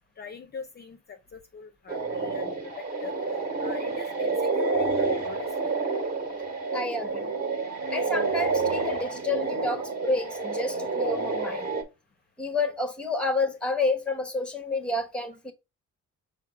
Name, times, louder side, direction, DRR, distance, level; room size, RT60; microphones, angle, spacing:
voice 1, 0.2-3.2 3.6-5.8, left 5 dB, 35° left, 0.7 m, -42 dB
sound 1, 1.9-11.8, right 3 dB, 30° right, 1.5 m, -29 dB
voice 2, 6.7-7.3 7.9-11.7 12.4-15.5, left 3 dB, 5° left, 1.0 m, -29 dB
5.6 x 2.0 x 4.8 m
cardioid pair, 90°, 30 cm